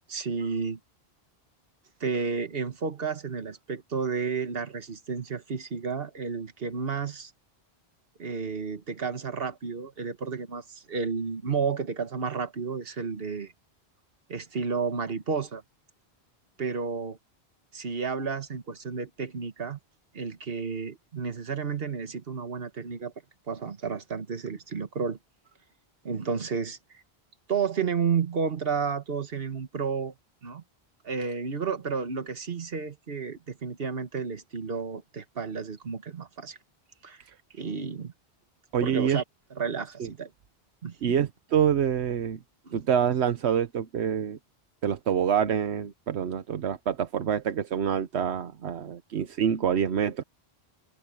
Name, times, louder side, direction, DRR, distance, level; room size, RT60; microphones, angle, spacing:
voice 1, 0.1-0.8 2.0-7.3 8.2-13.5 14.3-15.6 16.6-17.2 17.7-19.8 20.1-23.1 23.5-25.2 26.0-26.8 27.5-30.1 30.4-30.6 31.0-36.6 37.0-37.2 37.5-38.1 38.8-39.2 39.5-40.3 40.8-41.2 42.6-42.8, right 5 dB, 65° right, 1.6 m, -31 dB
voice 2, 38.7-39.2 40.0-40.1 41.0-42.4 42.7-44.4 44.8-50.2, right 8 dB, 85° right, 1.1 m, -26 dB
omnidirectional pair, 1.1 m